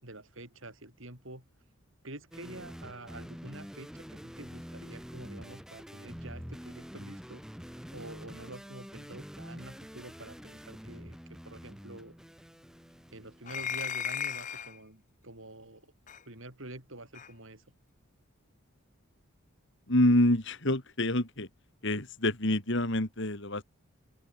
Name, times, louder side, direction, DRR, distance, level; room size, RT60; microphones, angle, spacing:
voice 1, 0.0-1.4 2.0-7.4 7.9-12.2 13.1-15.9 16.3-17.6, right 2 dB, 60° right, 4.8 m, -47 dB
sound 1, 2.3-13.8, equal, ahead, 2.5 m, -46 dB
sound 2, 13.4-14.8 16.1-16.2 17.1-17.3, left 8 dB, 35° left, 0.7 m, -35 dB
voice 2, 19.9-21.5 21.8-23.6, left 1 dB, 55° left, 2.9 m, -27 dB
open air
head